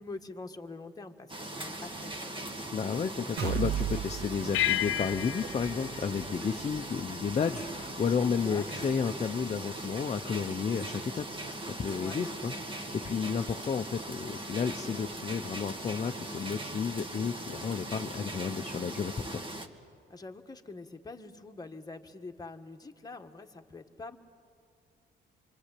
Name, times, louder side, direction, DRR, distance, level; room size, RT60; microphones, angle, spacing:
voice 1, 0.0-2.5 8.2-8.7 11.9-12.2 20.1-24.2, left 3 dB, 20° left, 4 dB, 1.6 m, -45 dB
sound 1, 1.3-19.7, right 1 dB, 25° right, 2.0 m, -40 dB
voice 2, 2.7-19.4, left 6 dB, 35° left, 6 dB, 0.7 m, -32 dB
sound 2, 3.4-11.2 11.6-11.7 12.1-12.2, right 10 dB, 55° right, 0.8 m, -39 dB
sound 3, 4.5-7.3, left 13 dB, 85° left, 0.6 m, -33 dB
26.0 x 24.5 x 8.4 m, 2.4 s
cardioid pair, 90°, 20 cm